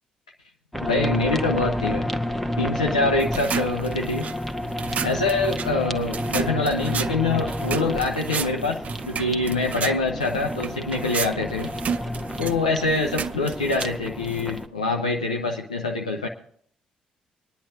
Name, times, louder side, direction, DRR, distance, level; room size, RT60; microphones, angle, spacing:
sound 1, 0.7-14.7, left 1 dB, 5° left, 1.0 m, -30 dB
voice 1, 0.8-2.1 2.6-4.3 5.0-11.7 12.4-16.3, left 3 dB, 85° left, 1 dB, 0.5 m, -25 dB
sound 2, 3.2-14.7, right 6 dB, 45° right, 0.6 m, -33 dB
25.5 x 10.0 x 2.6 m, 0.64 s
figure-of-eight pair, 40°, 4 cm